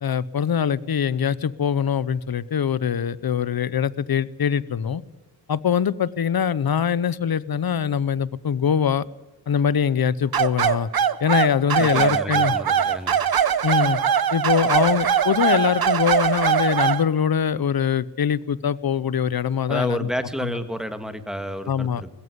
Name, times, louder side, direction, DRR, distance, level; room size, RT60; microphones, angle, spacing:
voice 1, 0.0-5.0 5.5-9.0 9.5-10.9 11.2-12.5 13.6-14.0 14.3-20.1 20.4-20.5 21.7-22.0, left 8 dB, 60° left, 19 dB, 0.8 m, -23 dB
sound 1, 10.3-17.0, right 8 dB, 60° right, 0.9 m, -21 dB
voice 2, 11.8-13.2 19.7-22.1, equal, ahead, 9 dB, 1.7 m, -30 dB
20.5 x 16.0 x 9.8 m, 1.1 s
wide cardioid pair, 145°, 42 cm